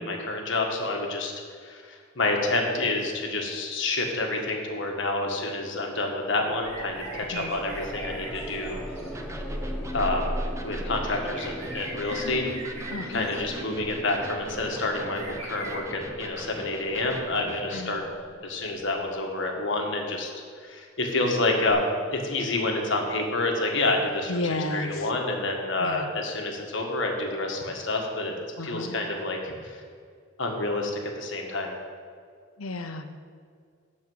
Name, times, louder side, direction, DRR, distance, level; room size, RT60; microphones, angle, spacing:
voice 1, 0.0-1.3 1.6-8.8 9.9-12.4 13.1-18.0 18.4-20.3 20.6-28.3 28.6-29.8 30.4-30.9 31.2-31.7, left 2 dB, 60° left, 1 dB, 1.6 m, -28 dB
sound 1, 6.5-19.3 21.7-21.8, equal, 5° left, 1.0 m, -38 dB
sound 2, 6.6-9.2 11.1-13.4 15.1-15.8, right 2 dB, 30° right, 1.9 m, -41 dB
Electric guitar, 9.1-17.9, right 1 dB, 15° right, 0.7 m, -42 dB
voice 2, 12.1-12.6 12.9-13.3 17.7-18.0 24.3-25.1 25.8-26.1 28.6-29.0 32.6-33.1, left 2 dB, 90° left, 8 dB, 0.8 m, -33 dB
12.0 x 4.3 x 7.8 m, 2.1 s
head